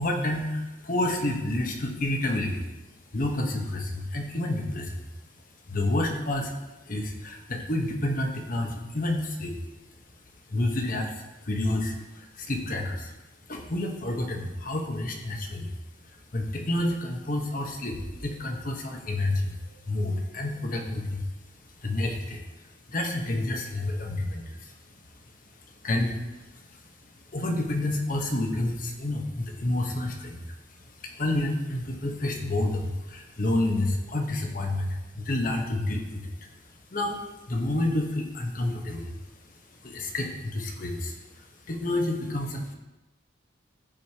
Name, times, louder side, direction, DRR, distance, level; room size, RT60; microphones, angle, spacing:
voice 1, 0.0-2.7 3.1-5.1 5.7-6.5 6.9-9.5 10.5-13.1 13.5-15.7 16.3-21.2 21.8-24.7 25.8-26.4 27.3-30.5 30.8-36.3 36.9-37.2 37.5-39.1 39.8-42.7, left 1 dB, 45° left, 2 dB, 1.1 m, -29 dB
14.0 x 5.1 x 2.9 m, 1.0 s
head